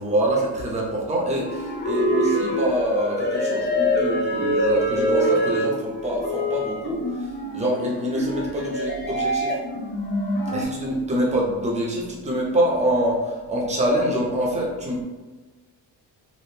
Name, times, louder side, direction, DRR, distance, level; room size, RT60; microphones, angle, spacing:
voice 1, 0.0-9.6 10.5-15.0, right 1 dB, 15° right, -3 dB, 0.6 m, -25 dB
alien siren, 1.3-10.7, equal, 25° left, 0.4 m, -25 dB
3.4 x 2.5 x 2.8 m, 1.3 s
wide cardioid pair, 165°, 44 cm